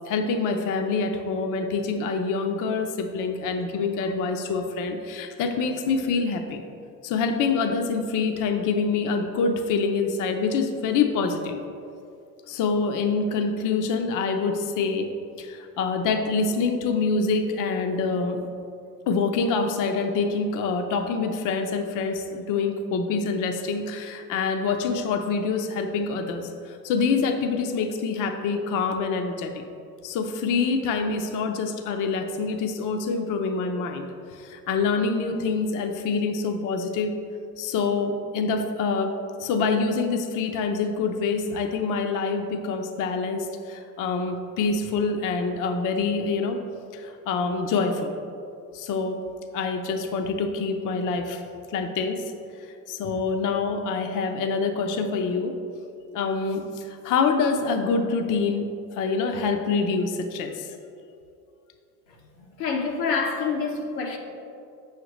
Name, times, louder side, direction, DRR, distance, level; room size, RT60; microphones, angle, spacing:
voice 1, 0.1-6.6 7.0-11.6 12.5-15.1 15.4-18.5 19.1-29.6 30.0-34.0 34.3-37.1 37.6-39.1 39.4-46.6 46.9-48.1 48.7-49.2 49.5-51.4 51.7-52.2 52.9-55.6 56.1-60.7, left 4 dB, 40° left, 0.6 m, -26 dB
voice 2, 62.1-64.2, left 4 dB, 90° left, 1.1 m, -28 dB
7.5 x 6.5 x 3.0 m
supercardioid pair, 95°, 48 cm